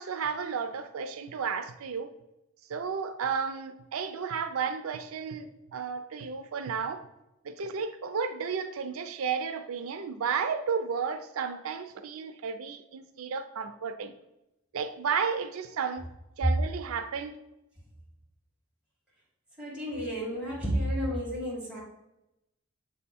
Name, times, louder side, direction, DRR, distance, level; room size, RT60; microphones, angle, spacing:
voice 1, 0.0-2.1 2.7-7.1 7.4-14.1 14.7-16.0 16.4-17.3, right 6 dB, 85° right, 0.4 m, -33 dB
voice 2, 19.6-21.8, equal, 5° right, 2.0 m, -31 dB
7.3 x 3.5 x 4.2 m
head